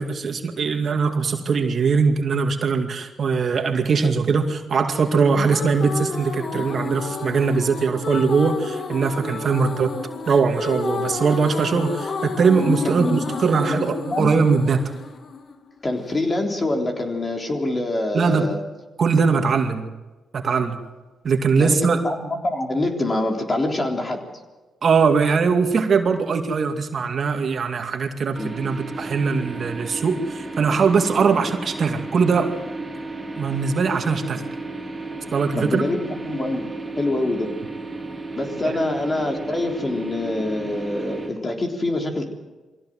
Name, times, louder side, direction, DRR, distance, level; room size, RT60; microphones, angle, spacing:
voice 1, 0.0-9.9 10.3-14.8 18.1-18.5 19.0-19.9 20.3-20.8 21.2-22.0 24.8-32.6 33.4-34.4 35.3-35.8 38.6-38.8, right 5 dB, 55° right, 5 dB, 2.3 m, -21 dB
sound 1, 5.1-16.1, left 4 dB, 55° left, 2.4 m, -31 dB
voice 2, 12.7-13.3 13.5-14.3 15.8-18.6 21.6-21.8 22.0-24.3 28.4-28.5 35.6-36.7 37.0-37.5 38.4-42.3, left 2 dB, 30° left, 2 dB, 3.6 m, -25 dB
sound 2, 28.3-41.3, right 2 dB, 15° right, 4.4 m, -33 dB
23.0 x 16.5 x 7.8 m, 1.2 s
cardioid pair, 80°, 0 cm